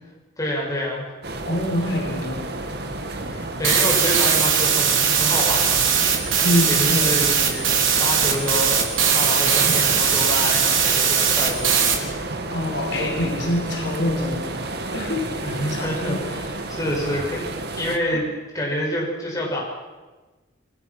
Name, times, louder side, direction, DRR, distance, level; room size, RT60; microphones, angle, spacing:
voice 1, 0.4-1.1 3.3-5.8 6.1-6.3 6.7-11.8 15.4-18.3 18.5-19.6, left 1 dB, 20° left, -3 dB, 6.9 m, -27 dB
sound 1, 1.2-18.0, right 2 dB, 55° right, 2.2 m, -31 dB
voice 2, 1.5-2.6 6.4-7.1 9.7-9.8 12.5-15.3 15.7-16.2 18.1-18.2, left 1 dB, 65° left, 1 dB, 4.9 m, -25 dB
sound 2, 3.6-12.0, right 7 dB, 85° right, 3.9 m, -20 dB
30.0 x 20.5 x 6.3 m, 1.2 s
head